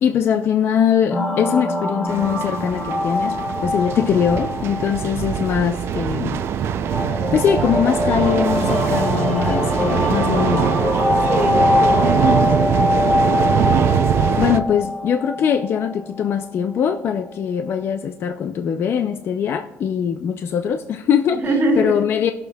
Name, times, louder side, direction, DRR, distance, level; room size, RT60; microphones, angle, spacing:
voice 1, 0.0-6.4 7.3-10.7 14.4-21.4 21.8-22.3, left 8 dB, 45° left, 7 dB, 0.4 m, -21 dB
sound 1, 1.1-16.4, left 2 dB, 20° left, 0.9 m, -23 dB
sound 2, 2.1-14.6, right 9 dB, 50° right, 0.4 m, -22 dB
voice 2, 11.3-12.7 21.4-22.0, right 1 dB, 35° right, -1 dB, 2.3 m, -23 dB
19.0 x 6.7 x 2.3 m, 0.95 s
cardioid pair, 155°, 5 cm